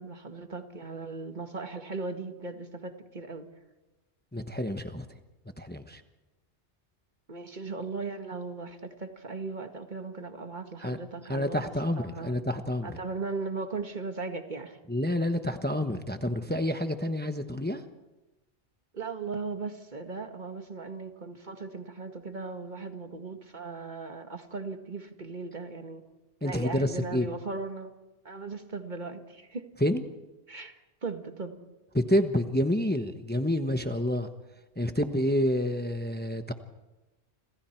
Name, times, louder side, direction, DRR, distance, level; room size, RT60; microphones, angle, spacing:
voice 1, 0.0-3.5 7.3-11.6 12.0-12.3 12.8-14.8 18.9-26.0 26.4-27.9 28.2-29.7 30.5-31.6, right 4 dB, 40° right, 6 dB, 2.0 m, -38 dB
voice 2, 4.3-5.1 5.6-6.0 10.8-11.0 11.3-13.0 14.9-17.8 26.4-27.3 29.8-30.0 31.9-34.3 34.8-36.5, left 1 dB, 10° left, 7 dB, 1.0 m, -28 dB
29.5 x 26.5 x 4.6 m, 1.1 s
omnidirectional pair, 1.1 m